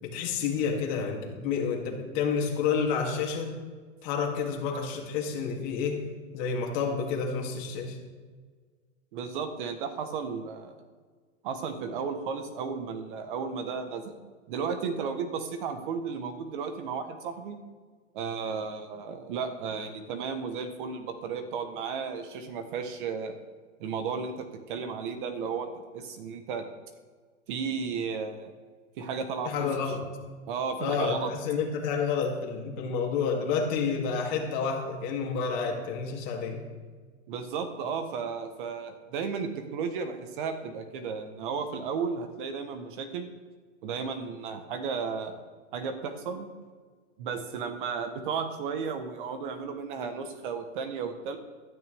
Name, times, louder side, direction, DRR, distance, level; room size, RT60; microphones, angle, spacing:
voice 1, 0.0-3.6 4.0-6.0 6.3-8.0 29.4-30.0 30.8-36.6, left 5 dB, 35° left, 0 dB, 2.8 m, -29 dB
voice 2, 9.1-10.7 11.4-14.1 14.5-17.6 18.1-23.4 23.8-26.7 27.5-28.5 29.0-29.5 30.5-31.3 37.3-43.3 43.8-45.4 45.7-46.5 47.2-51.4, right 5 dB, 40° right, 7 dB, 1.2 m, -34 dB
15.5 x 12.5 x 3.5 m, 1.5 s
hypercardioid pair, 155°, 39 cm